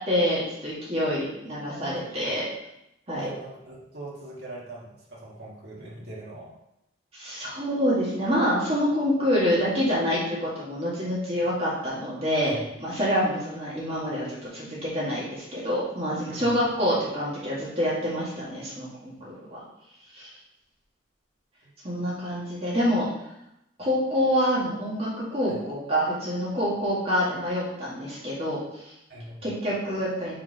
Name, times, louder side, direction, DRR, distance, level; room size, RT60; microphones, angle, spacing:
voice 1, 0.0-2.4 3.1-3.3 7.1-14.3 14.5-19.6 20.1-20.3 21.8-23.1 23.8-28.9 29.4-30.4, equal, 30° right, -8 dB, 2.0 m, -26 dB
voice 2, 1.7-2.3 3.1-6.5 12.4-12.6 16.2-16.5 21.6-21.7 25.5-25.6 29.1-29.4, right 2 dB, 60° right, -6 dB, 1.7 m, -41 dB
4.8 x 4.2 x 5.1 m, 0.84 s
head